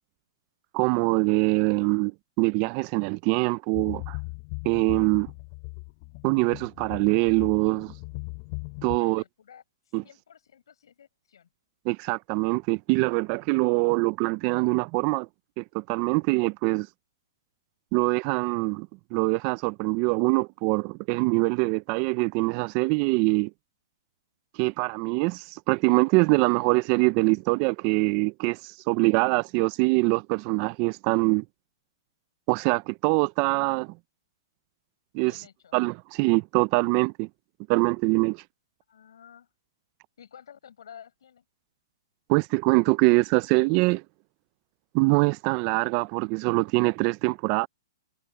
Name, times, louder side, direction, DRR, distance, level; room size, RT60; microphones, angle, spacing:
voice 1, 0.7-4.2 4.7-5.3 6.2-7.9 8.8-9.2 9.9-10.0 11.9-15.3 15.6-16.9 17.9-23.5 24.6-31.4 32.5-33.9 35.1-35.3 35.7-37.3 37.7-38.4 42.3-44.0 44.9-47.7, right 27 dB, 30° right, 0.3 m, -24 dB
sound 1, 3.7-9.0, left 33 dB, 35° left, 3.7 m, -38 dB
voice 2, 8.9-9.6 10.0-11.5 35.2-35.8 38.9-39.5 40.2-41.4, left 8 dB, 75° left, 7.0 m, -51 dB
hypercardioid pair, 165°, 2 cm